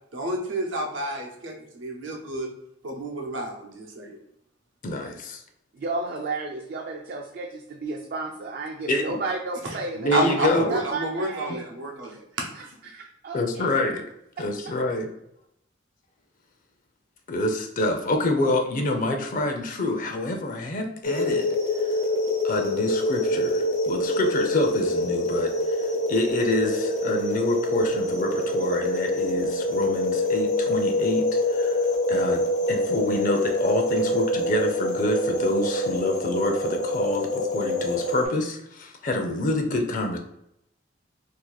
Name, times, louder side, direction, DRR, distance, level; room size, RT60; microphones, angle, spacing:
voice 1, 0.1-2.5 2.8-4.2 9.6-9.8 10.1-12.5, right 1 dB, 85° right, 1 dB, 0.8 m, -29 dB
voice 2, 4.8-5.4 8.9-9.2 9.9-10.8 13.3-14.1 14.4-15.1 17.3-21.5 21.8-21.9 22.4-31.8 32.1-40.2, left 2 dB, 45° left, 4 dB, 0.5 m, -27 dB
voice 3, 5.7-10.3 10.7-11.6 12.1-12.2 12.6-13.7 14.4-14.5, right 3 dB, 50° right, 1 dB, 0.4 m, -33 dB
sound 1, 21.0-38.3, left 1 dB, 85° left, 0.9 m, -25 dB
2.7 x 2.5 x 3.9 m, 0.79 s
head